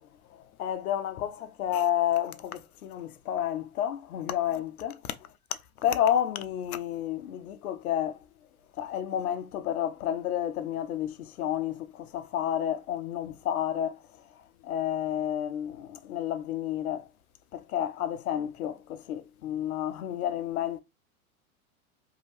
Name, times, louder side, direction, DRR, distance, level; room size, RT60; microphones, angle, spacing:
voice 1, 0.3-5.2 5.8-8.2 8.8-14.0 14.6-17.1 17.5-20.8, left 10 dB, 85° left, 0.6 m, -30 dB
2.7 x 2.2 x 3.0 m
hypercardioid pair, 95°, 42 cm